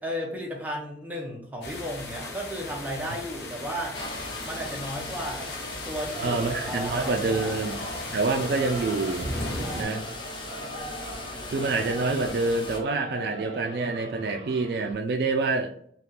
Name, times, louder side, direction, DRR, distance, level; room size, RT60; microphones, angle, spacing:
voice 1, 0.0-4.0 4.4-5.5 5.9-7.6, equal, 10° right, -1 dB, 0.7 m, -34 dB
sound 1, 1.6-9.8, left 2 dB, 70° left, 0.7 m, -37 dB
sound 2, 3.9-12.8, left 2 dB, 25° left, 0.4 m, -38 dB
Singing / Musical instrument, 6.0-14.9, right 2 dB, 40° right, 0.9 m, -40 dB
voice 2, 6.2-7.8 8.1-9.3 9.7-10.0 11.5-15.7, right 3 dB, 60° right, 5 dB, 0.3 m, -27 dB
3.3 x 2.4 x 2.8 m, 0.62 s
head